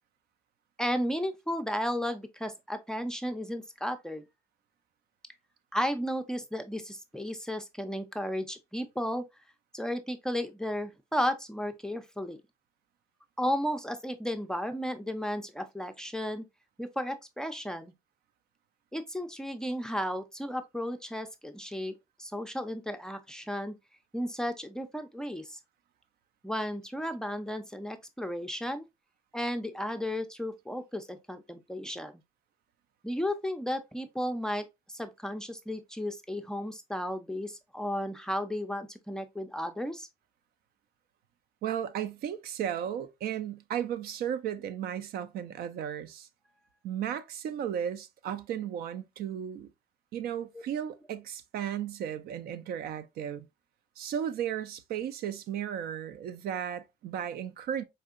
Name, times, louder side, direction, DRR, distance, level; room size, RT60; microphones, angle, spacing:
voice 1, 0.8-4.2 5.7-9.2 9.7-12.4 13.4-16.4 16.8-17.9 18.9-23.7 24.1-25.6 26.4-28.9 29.3-32.1 33.0-40.1 50.5-50.6, equal, 5° left, 0.4 m, -34 dB
voice 2, 41.6-46.3 46.8-49.7 50.1-53.5 54.0-57.8, right 9 dB, 65° right, 0.5 m, -35 dB
4.3 x 2.7 x 2.4 m
cardioid pair, 110°, 17 cm